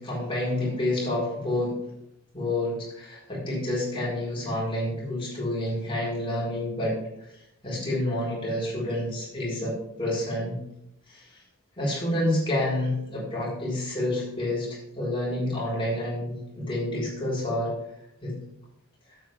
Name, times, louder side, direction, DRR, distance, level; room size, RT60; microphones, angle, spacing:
voice 1, 0.0-1.8 2.3-7.0 7.6-10.6 11.1-11.3 11.8-14.7 15.0-17.7 18.2-18.3, left 1 dB, 25° left, -5 dB, 4.6 m, -28 dB
12.0 x 8.5 x 3.5 m, 0.83 s
head